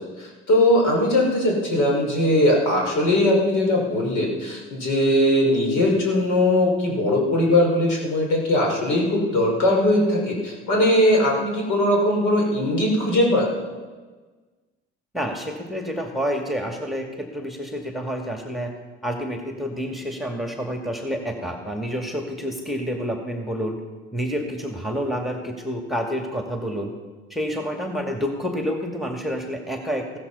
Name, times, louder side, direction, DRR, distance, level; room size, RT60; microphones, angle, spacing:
voice 1, 0.0-13.5, left 1 dB, 60° left, -1 dB, 5.4 m, -20 dB
voice 2, 15.1-18.7 19.0-23.8 24.1-26.9 27.3-30.2, equal, ahead, 3 dB, 2.2 m, -28 dB
15.5 x 14.0 x 5.6 m, 1.4 s
hypercardioid pair, 60°, 33 cm